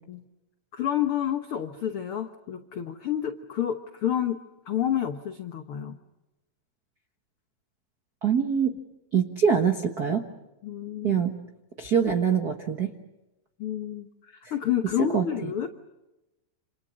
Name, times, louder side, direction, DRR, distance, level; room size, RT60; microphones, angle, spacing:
voice 1, 0.7-4.4 4.7-6.0 10.6-11.2 13.6-15.7, left 10 dB, 75° left, 7 dB, 1.2 m, -29 dB
voice 2, 8.2-8.7 9.1-10.2 11.0-11.3 11.8-12.9 15.1-15.7, right 7 dB, 65° right, 5 dB, 0.9 m, -24 dB
28.0 x 27.5 x 6.4 m, 0.98 s
omnidirectional pair, 4.2 m